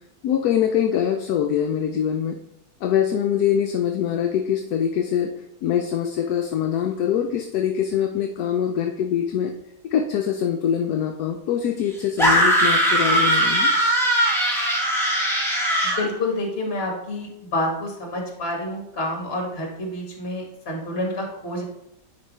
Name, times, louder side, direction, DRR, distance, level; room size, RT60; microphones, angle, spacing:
voice 1, 0.2-2.4 2.8-5.3 5.6-9.5 9.9-13.8, left 9 dB, 70° left, 4 dB, 1.0 m, -23 dB
sound 1, 12.2-16.1, right 1 dB, ahead, 1.2 m, -20 dB
voice 2, 15.8-21.6, left 1 dB, 35° left, 0 dB, 1.7 m, -28 dB
9.2 x 4.5 x 3.1 m, 0.81 s
omnidirectional pair, 1.8 m